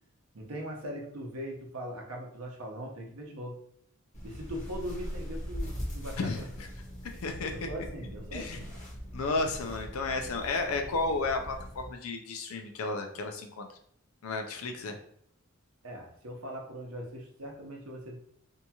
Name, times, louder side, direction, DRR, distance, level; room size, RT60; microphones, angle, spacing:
voice 1, 0.3-3.6 4.2-6.5 7.5-8.6 15.8-18.2, equal, 80° right, 0 dB, 0.7 m, -40 dB
sound 1, 4.1-11.9, equal, 35° left, 0.7 m, -41 dB
voice 2, 6.2-6.7 7.2-7.7 8.3-8.6 9.1-13.7 14.2-15.0, left 3 dB, 75° left, 4 dB, 0.4 m, -33 dB
2.7 x 2.3 x 2.8 m, 0.66 s
head